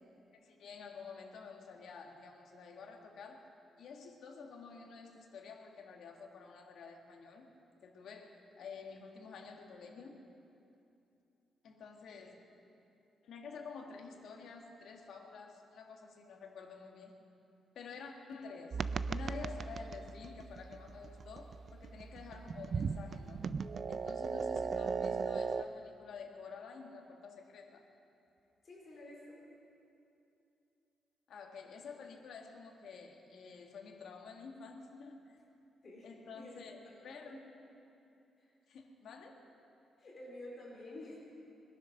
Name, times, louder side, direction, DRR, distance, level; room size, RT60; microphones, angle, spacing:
voice 1, 0.3-3.5 3.8-7.5 7.8-10.3 11.6-12.4 13.2-17.2 17.7-23.4 23.9-27.8 31.3-35.4 36.0-37.4 38.7-39.4, left 5 dB, 60° left, 1 dB, 1.7 m, -50 dB
sound 1, 18.7-25.6, right 5 dB, 35° right, 0.3 m, -38 dB
voice 2, 28.6-29.4 35.8-36.1 36.3-37.4 38.4-38.5 40.0-41.2, left 1 dB, 35° left, -4 dB, 4.1 m, -50 dB
21.0 x 10.5 x 6.5 m, 2.8 s
wide cardioid pair, 180°, 0 cm